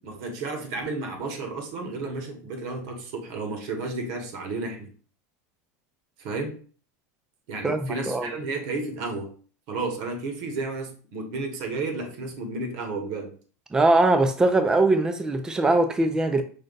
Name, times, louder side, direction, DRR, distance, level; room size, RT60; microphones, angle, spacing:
voice 1, 0.0-4.9 6.2-6.6 7.5-9.3 9.7-13.3, right 3 dB, 50° right, 1.0 m, -32 dB
voice 2, 7.6-8.3 13.7-16.4, right 2 dB, 10° right, 0.4 m, -21 dB
5.2 x 2.2 x 3.9 m
supercardioid pair, 160°, 9 cm